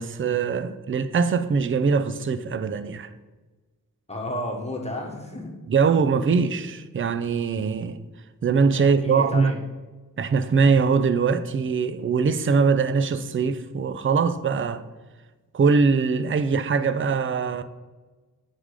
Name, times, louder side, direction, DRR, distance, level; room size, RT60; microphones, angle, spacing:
voice 1, 0.0-3.1 5.7-8.0 8.4-9.5 10.2-14.8 15.5-17.6, right 5 dB, 35° right, 0.4 m, -22 dB
voice 2, 4.1-5.5 8.8-9.6, left 1 dB, 20° left, 1.4 m, -32 dB
8.5 x 3.7 x 4.8 m
wide cardioid pair, 75°, 35 cm